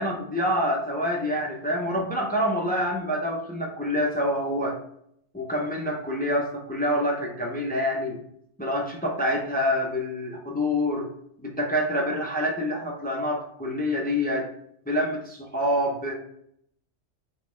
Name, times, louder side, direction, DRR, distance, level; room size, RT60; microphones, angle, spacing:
voice 1, 0.0-4.8 5.3-8.2 8.6-11.1 11.4-14.5 14.9-16.2, equal, 15° left, -1 dB, 0.3 m, -26 dB
5.2 x 2.2 x 3.1 m, 0.72 s
omnidirectional pair, 1.2 m